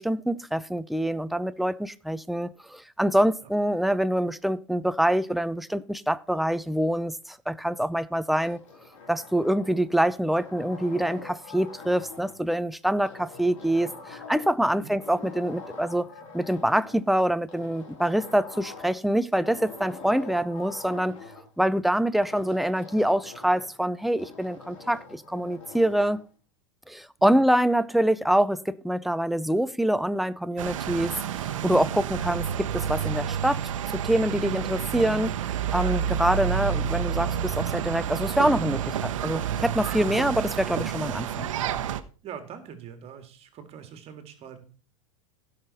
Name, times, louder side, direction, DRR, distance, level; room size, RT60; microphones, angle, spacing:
voice 1, 0.0-8.6 9.1-16.1 16.3-21.2 21.6-26.2 26.9-31.1 31.6-33.6 33.9-35.3 35.7-41.5, right 1 dB, ahead, 0.5 m, -25 dB
sound 1, 8.4-10.0 10.4-12.4 13.1-14.7 15.0-17.0 17.5-19.1 19.4-21.4 22.2-23.8 24.2-26.2, left 4 dB, 75° left, 3.6 m, -44 dB
sound 2, 30.6-42.0, right 9 dB, 85° right, 0.9 m, -29 dB
voice 2, 42.2-44.7, right 8 dB, 40° right, 1.9 m, -43 dB
16.0 x 5.8 x 4.1 m
hypercardioid pair, 110°, 16 cm